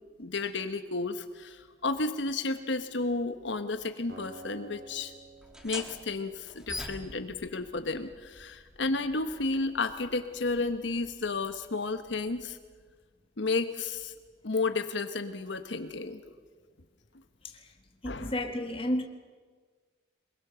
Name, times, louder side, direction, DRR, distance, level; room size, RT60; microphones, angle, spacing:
voice 1, 0.2-5.1 5.6-12.6 13.4-14.1 14.4-16.2 18.0-18.3, left 3 dB, 75° left, 9 dB, 1.1 m, -32 dB
Acoustic guitar, 4.1-7.3, right 3 dB, 55° right, 3.8 m, -51 dB
sound 1, 5.4-12.7, left 1 dB, 5° right, 1.7 m, -46 dB
voice 2, 18.0-19.0, left 1 dB, 30° left, 4 dB, 1.5 m, -31 dB
23.5 x 21.5 x 6.9 m, 1.5 s
head